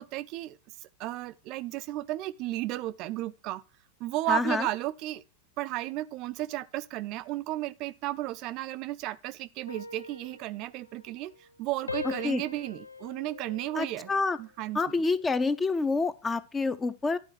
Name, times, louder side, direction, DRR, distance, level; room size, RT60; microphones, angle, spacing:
voice 1, 0.0-3.6 4.0-5.2 5.6-14.1 14.4-14.8, right 16 dB, 40° right, 0.5 m, -34 dB
voice 2, 4.3-4.7 12.0-12.4 13.8-14.4 14.7-17.2, left 3 dB, 15° left, 0.6 m, -28 dB
sound 1, 9.7-11.6 11.9-14.4 14.9-15.3, left 4 dB, 80° left, 0.5 m, -42 dB
11.0 x 4.2 x 5.8 m
figure-of-eight pair, 90°, 0 cm